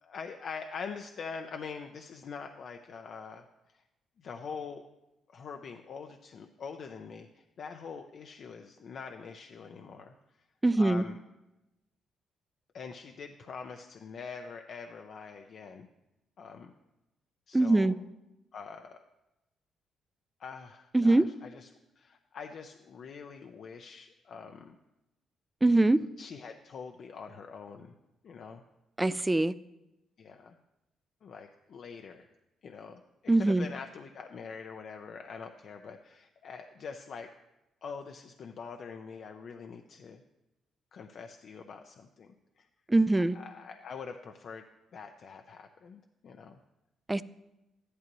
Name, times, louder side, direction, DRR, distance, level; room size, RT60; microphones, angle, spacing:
voice 1, 0.0-3.5 4.2-4.8 5.3-10.1 10.8-11.2 12.7-15.9 16.4-16.7 17.5-17.9 18.5-19.0 20.4-21.7 22.0-24.8 26.2-27.9 28.2-28.6 30.2-30.5 31.2-32.3 32.6-33.0 33.4-37.3 37.8-40.2 40.9-42.7 43.2-44.6 44.9-46.6, left 5 dB, 60° left, 5 dB, 0.6 m, -44 dB
voice 2, 10.6-11.0 17.5-18.0 20.9-21.3 25.6-26.0 29.0-29.5 33.3-33.7 42.9-43.4 47.1-47.2, right 2 dB, 15° right, 16 dB, 0.4 m, -23 dB
13.5 x 11.0 x 3.1 m, 0.96 s
cardioid pair, 90°, 0 cm